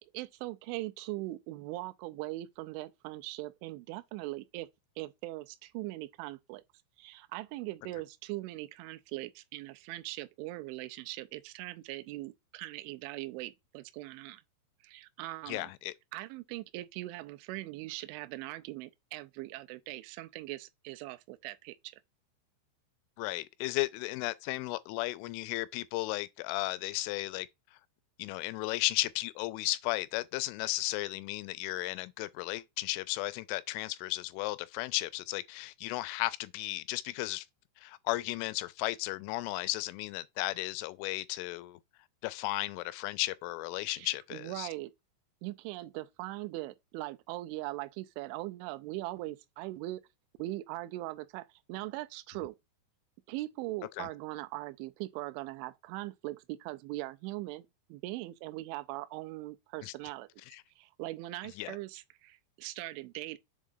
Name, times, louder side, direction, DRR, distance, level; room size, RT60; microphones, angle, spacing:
voice 1, 0.0-4.7 5.0-6.6 7.0-14.4 14.8-15.7 16.1-22.0 43.9-44.9 45.4-50.0 50.4-52.6 53.3-60.3 60.8-63.4, right 18 dB, 85° right, 2.9 m, -40 dB
voice 2, 15.5-15.9 23.2-27.5 28.2-37.5 37.8-41.8 42.2-44.7 54.0-54.1 59.8-59.9 60.5-60.6 61.6-61.8, left 19 dB, 90° left, 3.1 m, -34 dB
7.3 x 3.6 x 3.9 m
omnidirectional pair, 5.5 m